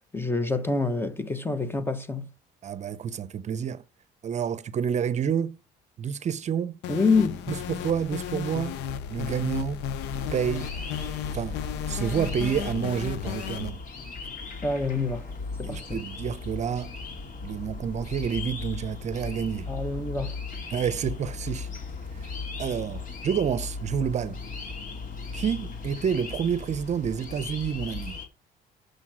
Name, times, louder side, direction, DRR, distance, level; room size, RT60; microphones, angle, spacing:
voice 1, 0.1-2.3 6.9-7.5 14.6-15.2 15.6-16.0 19.7-20.4, left 3 dB, 15° left, 1.0 m, -26 dB
voice 2, 2.6-3.8 4.2-5.6 6.0-6.8 7.7-8.8 9.1-9.8 10.3-10.7 11.3-11.6 11.9-13.8 15.6-16.9 17.4-19.7 20.7-21.7 22.2-22.3 22.6-24.4 25.3-28.2, right 7 dB, 45° right, 0.7 m, -29 dB
sound 1, 6.8-13.7, left 8 dB, 85° left, 0.7 m, -34 dB
sound 2, 10.0-28.3, left 4 dB, 50° left, 2.7 m, -37 dB
6.6 x 6.0 x 7.4 m
cardioid pair, 110°, 17 cm